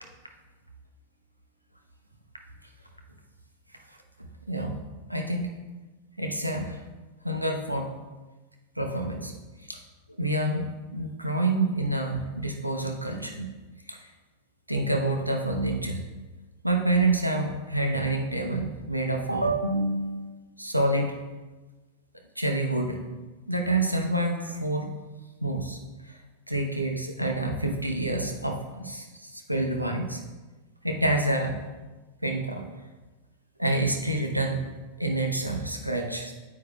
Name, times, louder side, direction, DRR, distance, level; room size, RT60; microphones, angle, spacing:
voice 1, 5.1-5.5 6.2-6.8 7.2-7.9 8.8-9.3 9.7-9.8 10.2-10.6 10.9-13.5 13.9-14.0 14.7-16.0 16.6-21.2 22.4-23.0 23.5-24.9 25.4-25.8 26.5-30.2 30.8-31.5 32.2-32.6 33.6-34.6 35.0-36.3, right 2 dB, 85° right, 2 dB, 0.9 m, -27 dB
9.4 x 8.4 x 2.3 m, 1.2 s
figure-of-eight pair, 90°, 0 cm